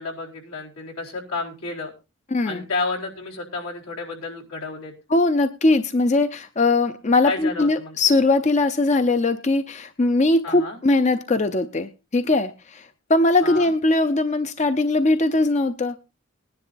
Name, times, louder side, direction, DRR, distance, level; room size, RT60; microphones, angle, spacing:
voice 1, 0.0-1.9 2.4-4.9 7.2-8.2 10.4-10.8 13.4-13.7, left 3 dB, 85° left, -2 dB, 4.1 m, -31 dB
voice 2, 2.3-2.7 5.1-16.0, left 2 dB, 35° left, 10 dB, 0.6 m, -20 dB
20.5 x 10.5 x 2.6 m, 0.29 s
head